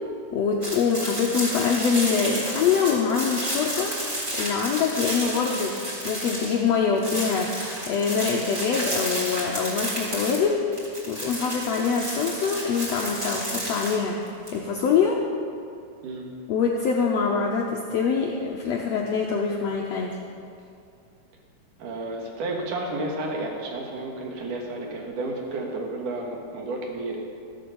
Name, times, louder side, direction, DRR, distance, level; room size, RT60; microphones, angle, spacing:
voice 1, 0.3-10.7 11.1-15.2 16.5-20.2, left 5 dB, 85° left, 0 dB, 1.4 m, -24 dB
sound 1, 0.6-6.7 7.0-14.5, right 1 dB, 25° right, 3.5 m, -31 dB
voice 2, 21.8-27.2, right 2 dB, 70° right, 0 dB, 3.1 m, -31 dB
14.5 x 7.7 x 7.0 m, 2.5 s
omnidirectional pair, 4.0 m